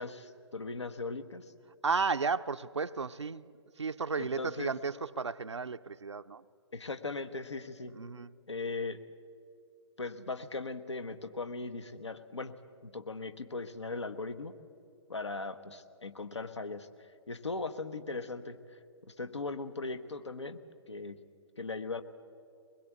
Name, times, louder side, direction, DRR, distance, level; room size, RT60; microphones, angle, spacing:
voice 1, 0.0-1.5 4.2-4.7 6.7-8.0 8.5-9.0 10.0-12.5 12.8-14.5 15.1-20.6 20.9-21.2 21.6-22.0, left 3 dB, 75° left, 1.2 m, -39 dB
voice 2, 1.8-3.5 3.8-6.4 7.9-8.3, right 5 dB, 75° right, 0.6 m, -33 dB
22.0 x 21.0 x 8.3 m
figure-of-eight pair, 125°, 15 cm